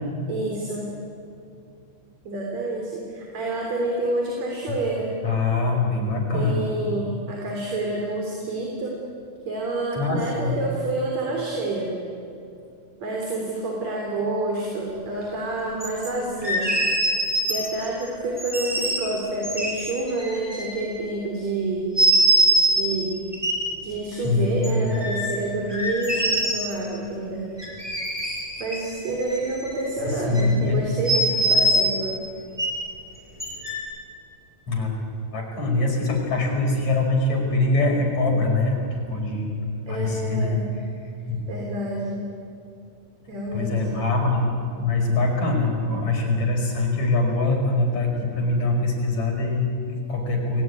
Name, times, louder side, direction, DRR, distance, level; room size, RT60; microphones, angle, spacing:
voice 1, 0.3-0.9 2.2-5.2 6.3-9.0 9.4-11.9 13.0-16.7 17.5-21.9 22.7-23.3 23.8-27.5 28.6-32.2 39.9-40.7 41.5-42.2 43.3-44.0, right 2 dB, 45° right, -1 dB, 4.6 m, -28 dB
voice 2, 5.2-6.6 10.0-10.5 24.1-24.9 30.0-30.8 34.7-34.9 35.3-38.8 39.1-39.5 39.9-40.6 41.3-41.4 43.5-50.6, left 2 dB, 50° left, 0 dB, 6.3 m, -23 dB
sound 1, 15.8-16.1 16.4-17.9 18.4-19.0 19.4-21.0 22.0-22.8 23.3-23.5 24.6-25.3 25.7-26.7 27.6-28.8 29.0-30.0 30.3-30.5 31.0-31.9 32.6-32.7 33.4-33.8, right 1 dB, 5° right, 6.8 m, -23 dB
29.5 x 20.5 x 9.7 m, 2.6 s
omnidirectional pair, 4.3 m